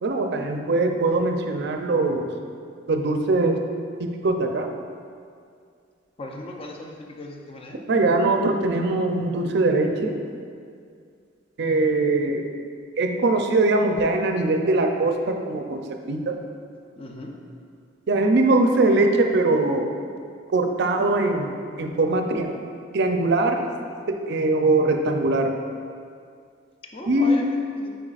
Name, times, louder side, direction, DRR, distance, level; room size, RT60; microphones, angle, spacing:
voice 1, 0.0-2.3 2.9-3.6 4.0-4.7 7.9-10.1 11.6-12.4 13.0-15.8 16.1-16.4 18.1-19.9 20.5-21.5 21.8-22.6 22.9-23.6 24.1-25.5 27.1-27.5, right 2 dB, 60° right, 4 dB, 0.5 m, -21 dB
voice 2, 6.2-7.8 17.0-17.4 26.9-28.0, left 1 dB, 30° left, 1 dB, 0.5 m, -37 dB
8.7 x 4.6 x 2.4 m, 2.3 s
head